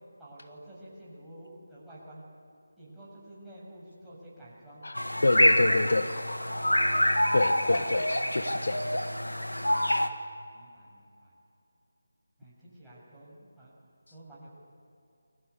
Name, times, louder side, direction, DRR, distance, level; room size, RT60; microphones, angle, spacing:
voice 1, 0.2-2.2 2.8-5.9 10.5-11.3 12.4-13.7 14.1-14.5, right 1 dB, ahead, -11 dB, 7.3 m, -50 dB
sound 1, 4.5-4.6 5.2-5.3 5.9-6.6 7.7-9.2, left 3 dB, 30° left, 2.8 m, -47 dB
voice 2, 4.8-6.2 7.3-8.9, left 2 dB, 60° left, 9 dB, 1.3 m, -27 dB
sound 2, 4.9-10.1, equal, 85° left, 2.0 m, -26 dB
29.5 x 22.0 x 8.2 m, 2.6 s
figure-of-eight pair, 160°, 0 cm